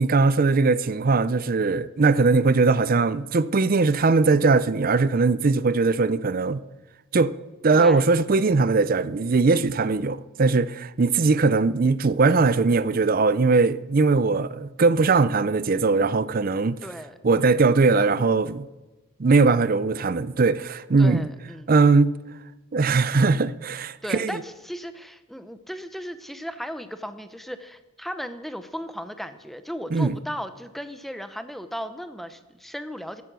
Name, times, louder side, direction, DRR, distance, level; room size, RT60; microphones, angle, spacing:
voice 1, 0.0-6.6 7.1-7.3 7.6-16.8 17.2-18.7 19.2-21.3 21.7-22.1 22.7-24.4 29.9-30.2, right 3 dB, 40° right, 0.5 m, -20 dB
voice 2, 7.7-8.0 16.8-17.2 21.0-21.7 24.0-33.2, equal, ahead, 0.7 m, -36 dB
14.5 x 11.5 x 6.2 m
head